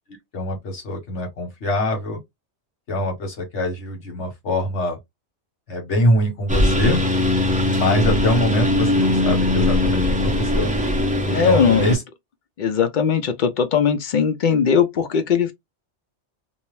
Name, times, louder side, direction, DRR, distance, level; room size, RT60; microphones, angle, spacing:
voice 1, 0.3-2.2 2.9-5.0 5.7-7.0 7.7-10.7 11.3-12.0, left 1 dB, 80° left, 1.3 m, -23 dB
Engine, 6.5-11.9, left 1 dB, 10° right, 0.4 m, -20 dB
voice 2, 11.3-11.9 12.6-15.5, left 6 dB, 55° left, 0.6 m, -19 dB
2.7 x 2.0 x 3.0 m
omnidirectional pair, 1.2 m